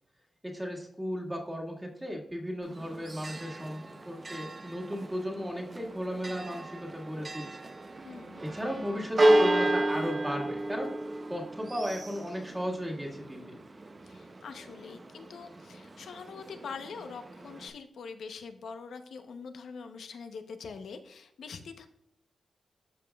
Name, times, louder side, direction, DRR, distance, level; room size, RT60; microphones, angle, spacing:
voice 1, 0.4-7.6 8.4-11.0 11.3-13.6, equal, 10° right, -1 dB, 1.8 m, -35 dB
Church bell, 2.6-17.7, right 1 dB, 35° right, 0.7 m, -32 dB
voice 2, 8.0-8.5 14.0-21.9, left 5 dB, 80° left, 7 dB, 0.8 m, -44 dB
13.0 x 5.1 x 2.3 m, 0.77 s
cardioid pair, 95°, 0 cm